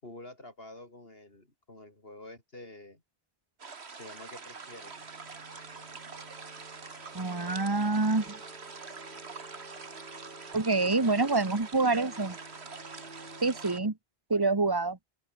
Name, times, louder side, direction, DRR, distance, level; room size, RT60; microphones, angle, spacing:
voice 1, 0.0-3.0 3.9-5.0 10.8-11.4 14.3-14.4, left 1 dB, 65° left, 5.1 m, -48 dB
sound 1, 3.6-13.8, right 5 dB, 90° right, 2.1 m, -45 dB
sound 2, 4.4-13.9, right 1 dB, 50° right, 7.5 m, -52 dB
voice 2, 7.1-8.4 10.5-12.4 13.4-14.0 14.3-15.0, right 3 dB, 20° right, 1.5 m, -26 dB
open air
omnidirectional pair, 1.1 m